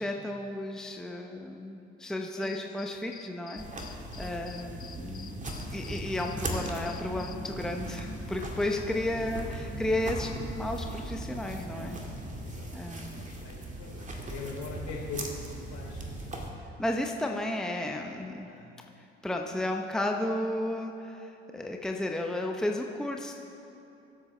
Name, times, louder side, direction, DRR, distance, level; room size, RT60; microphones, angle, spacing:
voice 1, 0.0-5.4 5.7-12.0 12.7-13.3 16.8-18.5 19.2-23.3, left 1 dB, ahead, 2 dB, 0.9 m, -33 dB
sound 1, 2.4-7.4, left 8 dB, 30° left, 0.6 m, -49 dB
sound 2, 3.6-16.5, right 1 dB, 25° right, 2.0 m, -38 dB
voice 2, 4.1-4.5 12.4-16.0 18.5-18.7, left 3 dB, 60° left, -3 dB, 3.3 m, -42 dB
22.0 x 8.4 x 3.3 m, 2.7 s
hypercardioid pair, 60°, 30 cm